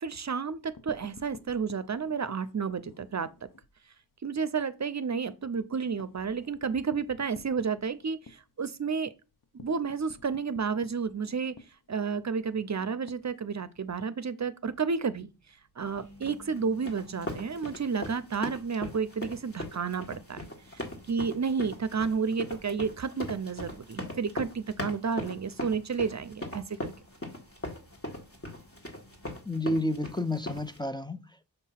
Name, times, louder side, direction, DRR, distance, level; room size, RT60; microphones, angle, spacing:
voice 1, 0.0-3.3 4.2-9.1 9.5-11.6 11.9-15.3 15.8-20.4 20.7-26.9, right 5 dB, 45° right, 0.6 m, -31 dB
sound 1, 0.5-3.7 4.1-4.3 4.6-4.7 5.0-13.9, left 4 dB, 55° left, 0.8 m, -53 dB
sound 2, 14.6-29.3, left 2 dB, 80° left, 2.8 m, -58 dB
sound 3, 16.2-30.8, left 1 dB, 35° left, 1.7 m, -39 dB
voice 2, 29.4-31.4, left 1 dB, 10° left, 0.5 m, -31 dB
6.6 x 2.8 x 5.7 m
cardioid pair, 45°, 38 cm